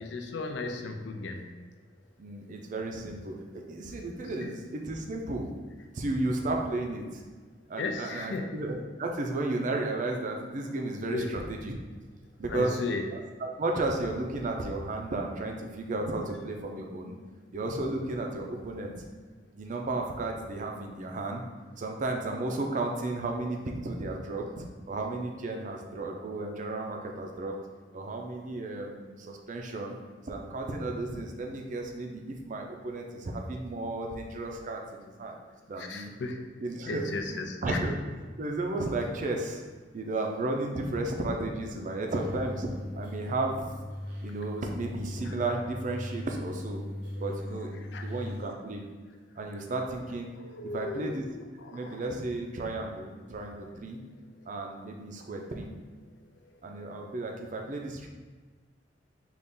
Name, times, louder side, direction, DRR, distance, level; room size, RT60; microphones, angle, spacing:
voice 1, 0.0-1.5 4.4-4.5 7.8-8.5 11.1-11.3 12.5-13.1 35.8-36.4 36.9-37.8 45.3-45.4 47.2-47.3 47.9-48.0 50.4-52.0, left 3 dB, 75° left, 5 dB, 0.4 m, -35 dB
voice 2, 2.2-5.5 5.9-7.2 7.7-11.7 12.4-12.8 13.1-17.1 17.5-19.0 19.6-21.4 21.8-27.6 27.9-30.0 30.3-35.4 35.7-36.1 36.6-38.0 38.4-39.6 39.9-42.7 42.9-43.6 44.2-46.8 47.2-48.8 49.4-50.3 50.6-51.2 51.7-54.0 54.5-55.7 56.6-58.1, right 2 dB, 45° right, 2 dB, 0.5 m, -33 dB
sound 1, 42.1-48.4, left 1 dB, 65° right, 0.8 m, -39 dB
4.0 x 2.4 x 3.6 m, 1.4 s
head